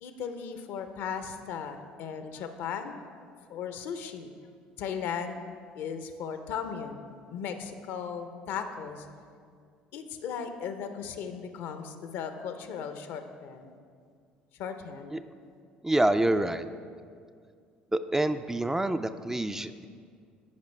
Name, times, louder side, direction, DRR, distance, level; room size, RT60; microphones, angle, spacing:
voice 1, 0.0-3.0 3.5-4.3 4.8-5.4 5.7-9.1 9.9-13.7 14.6-15.1, left 7 dB, 65° left, 8 dB, 0.6 m, -37 dB
voice 2, 15.8-16.7 17.9-19.9, right 1 dB, 10° right, 10 dB, 0.3 m, -27 dB
13.5 x 5.1 x 3.2 m, 2.2 s
hypercardioid pair, 65°, 4 cm